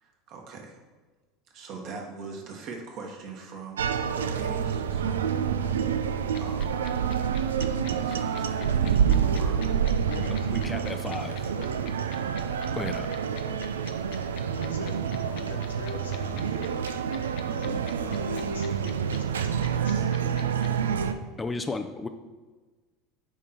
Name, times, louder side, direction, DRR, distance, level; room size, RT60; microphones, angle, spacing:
voice 1, 0.0-0.8 1.5-5.7 6.4-6.7 8.0-9.7, right 4 dB, 50° right, 1 dB, 1.6 m, -41 dB
sound 1, 3.8-21.1, right 7 dB, 80° right, 0.4 m, -28 dB
sound 2, 6.3-20.7, left 12 dB, 55° left, 0.7 m, -44 dB
voice 2, 7.9-8.2 10.2-11.4 12.7-13.1 21.4-22.1, left 3 dB, 20° left, 7 dB, 0.5 m, -34 dB
voice 3, 10.1-12.0 13.4-13.6 14.5-16.6 17.5-21.1, left 4 dB, 80° left, 2 dB, 1.1 m, -44 dB
8.8 x 3.6 x 4.4 m, 1.3 s
figure-of-eight pair, 75°, 0 cm